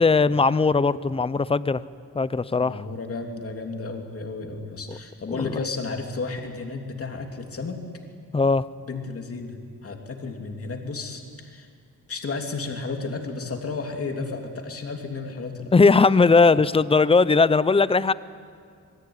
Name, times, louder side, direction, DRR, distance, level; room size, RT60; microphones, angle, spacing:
voice 1, 0.0-1.8 2.1-2.8 4.9-5.0 5.4-5.6 8.3-8.6 15.7-18.1, left 4 dB, 15° left, 17 dB, 0.6 m, -19 dB
voice 2, 2.5-7.8 8.9-11.7 12.1-15.7, left 3 dB, 40° left, 3 dB, 3.3 m, -33 dB
26.5 x 21.5 x 9.9 m, 2.2 s
wide cardioid pair, 150°, 34 cm